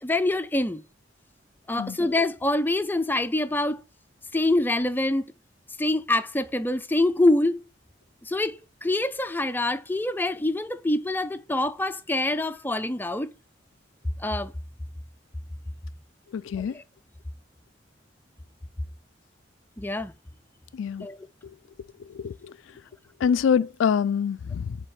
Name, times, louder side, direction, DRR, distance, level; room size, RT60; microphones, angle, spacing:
voice 1, 0.0-0.8 1.7-3.8 4.3-5.3 5.8-7.6 8.2-13.3 14.2-14.5 16.6-16.8 19.8-20.1 21.0-21.2, left 2 dB, 10° left, 0.4 m, -25 dB
voice 2, 16.3-16.7 20.7-21.1 22.1-22.5 23.2-24.8, left 7 dB, 90° left, 0.3 m, -25 dB
7.4 x 3.5 x 6.4 m
head